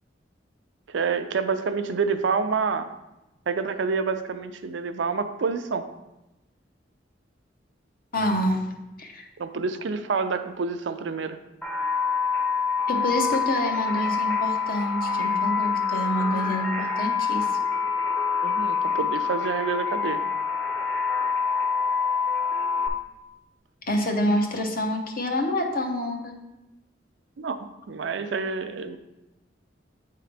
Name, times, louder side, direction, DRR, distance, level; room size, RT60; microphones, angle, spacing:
voice 1, 0.9-2.9 3.5-5.8 9.4-11.4 18.4-20.2 27.4-29.0, right 5 dB, 75° right, 9 dB, 0.5 m, -28 dB
voice 2, 8.1-8.7 9.0-9.3 12.9-17.5 23.9-26.4, left 1 dB, 55° left, 2 dB, 0.9 m, -27 dB
sound 1, 11.6-22.9, left 6 dB, 10° left, 0.7 m, -26 dB
8.6 x 3.7 x 3.4 m, 0.97 s
head